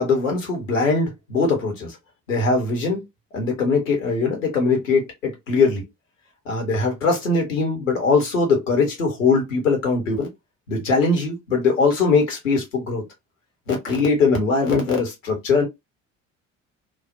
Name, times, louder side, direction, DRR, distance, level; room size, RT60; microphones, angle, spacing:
voice 1, 0.0-2.0 2.3-3.0 3.3-5.8 6.5-10.3 10.7-13.0 13.7-15.6, left 4 dB, 75° left, 1.0 m, -21 dB
2.4 x 2.0 x 2.7 m
figure-of-eight pair, 55°, 39 cm